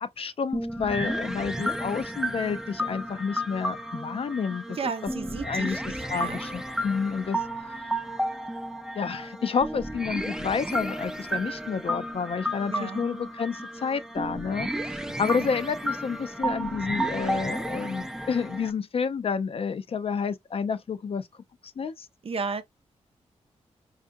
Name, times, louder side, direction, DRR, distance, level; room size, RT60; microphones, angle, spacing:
voice 1, 0.0-4.8 5.4-5.8 6.1-7.4 9.0-21.3 21.6-22.1, left 6 dB, 50° left, 0.4 m, -30 dB
sound 1, 0.5-18.7, right 1 dB, 5° right, 0.4 m, -32 dB
voice 2, 4.7-6.4 12.7-13.0 15.3-15.5 22.2-22.6, right 5 dB, 50° right, 0.6 m, -34 dB
5.3 x 2.4 x 2.6 m
wide cardioid pair, 105°, 12 cm